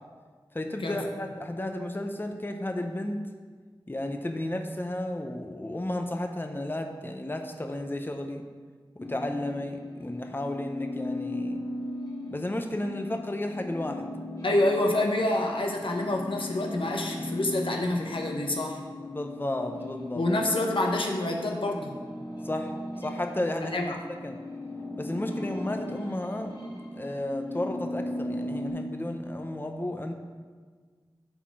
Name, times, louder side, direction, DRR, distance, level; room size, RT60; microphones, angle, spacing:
voice 1, 0.5-3.2 3.9-8.4 9.1-11.6 12.3-14.1 19.1-20.2 22.4-23.8 24.2-24.4 25.0-26.5 26.9-30.1, left 1 dB, 25° left, 4 dB, 0.7 m, -33 dB
sound 1, 9.0-23.6 23.9-28.7, left 1 dB, 45° left, 2.0 m, -38 dB
voice 2, 14.4-18.8 20.1-22.0 23.6-24.0, left 1 dB, 80° left, 1 dB, 1.0 m, -27 dB
11.5 x 4.2 x 4.7 m, 1.6 s
wide cardioid pair, 45°, 9 cm